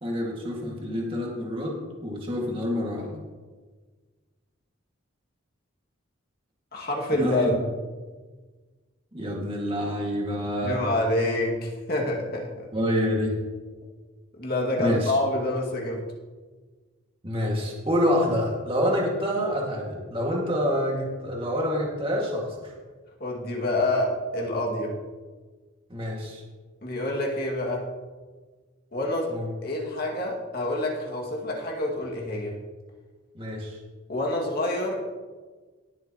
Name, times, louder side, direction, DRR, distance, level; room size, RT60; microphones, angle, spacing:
voice 1, 0.0-3.2 7.2-7.5 9.1-10.8 12.7-13.4 14.8-15.1 17.2-22.7 25.9-26.4 29.3-29.5 33.3-33.8, equal, 25° right, -2 dB, 2.0 m, -27 dB
voice 2, 6.7-7.7 10.6-12.7 14.3-16.0 23.2-25.0 26.8-27.9 28.9-29.3 29.6-32.6 34.1-35.0, left 1 dB, 50° left, -1 dB, 2.1 m, -27 dB
19.0 x 7.3 x 3.0 m, 1.4 s
head